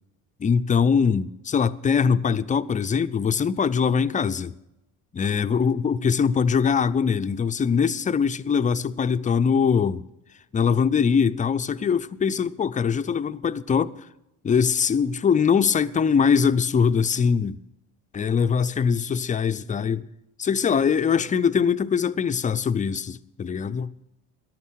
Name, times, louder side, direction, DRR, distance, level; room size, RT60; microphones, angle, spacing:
voice 1, 0.4-4.5 5.1-10.0 10.5-13.9 14.4-17.6 18.1-20.1 20.4-23.9, left 6 dB, 20° left, 0.4 m, -22 dB
14.5 x 11.0 x 6.3 m
cardioid pair, 110°, 43 cm